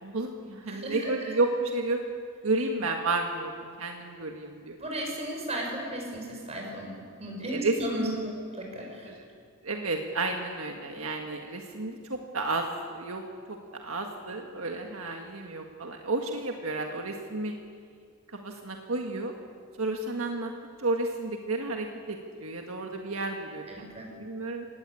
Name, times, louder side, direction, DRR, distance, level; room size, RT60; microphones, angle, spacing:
voice 1, 0.0-2.0 2.4-3.5 3.8-4.7 7.5-8.3 8.8-8.9 9.6-13.2 13.5-17.6 18.3-19.3 19.8-20.5 20.8-23.9 24.2-24.7, right 2 dB, 80° right, 3 dB, 1.7 m, -31 dB
voice 2, 0.6-1.1 4.8-8.1 8.5-9.1 23.7-24.1, right 1 dB, 30° right, 0 dB, 6.4 m, -35 dB
24.0 x 18.5 x 8.4 m, 2.2 s
head